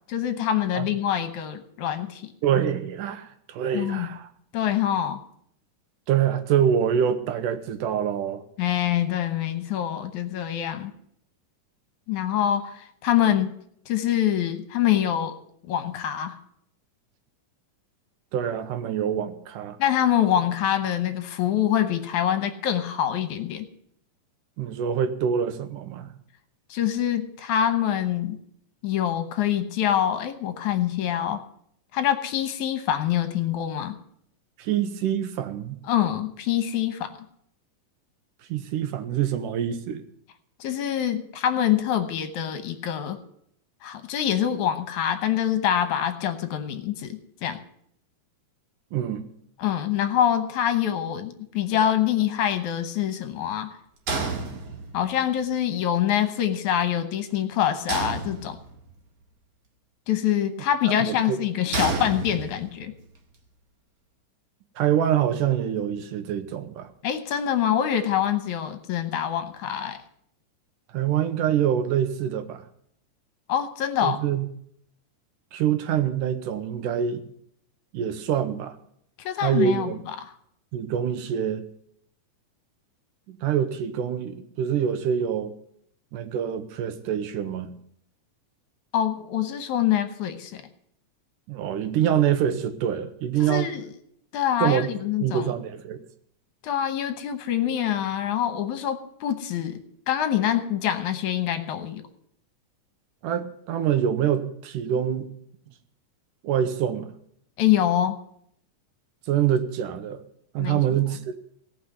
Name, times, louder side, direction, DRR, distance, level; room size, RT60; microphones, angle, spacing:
voice 1, 0.1-2.3 3.7-4.1 4.5-5.2 8.6-10.9 12.1-13.6 13.9-15.4 15.7-16.4 19.8-23.7 26.7-28.4 28.8-31.4 31.9-34.0 35.8-37.1 40.6-43.2 43.8-47.6 49.6-53.8 54.9-58.6 60.1-62.9 67.0-70.0 73.5-74.2 79.2-79.9 88.9-90.6 93.4-93.9 94.3-95.5 96.6-99.8 100.1-102.0 107.6-108.2 110.6-110.8, left 10 dB, 70° left, 9 dB, 2.4 m, -25 dB
voice 2, 2.4-4.3 6.1-8.4 18.3-19.8 24.6-26.1 34.6-35.8 38.5-40.0 48.9-49.2 60.9-61.4 61.9-62.0 64.8-66.9 70.9-72.6 74.0-74.5 75.5-77.2 77.9-78.8 79.4-80.0 80.7-81.6 83.3-85.5 86.1-87.8 91.5-93.7 94.6-94.9 95.2-96.0 103.2-105.3 106.4-107.1 109.3-110.2 110.5-111.4, right 9 dB, 85° right, 9 dB, 2.6 m, -25 dB
sound 1, 54.1-55.2 57.9-58.9 61.7-62.8, right 4 dB, 55° right, 2.8 m, -30 dB
18.0 x 6.0 x 9.4 m, 0.68 s
omnidirectional pair, 3.7 m